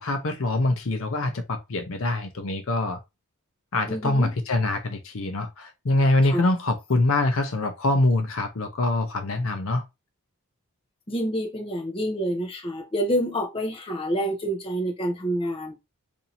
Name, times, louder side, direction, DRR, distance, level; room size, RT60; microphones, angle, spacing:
voice 1, 0.0-3.0 3.7-9.8, left 2 dB, 60° left, 0.7 m, -24 dB
voice 2, 3.9-4.3 6.2-6.4 11.1-15.8, equal, 25° left, 0.8 m, -28 dB
2.8 x 2.6 x 4.1 m
head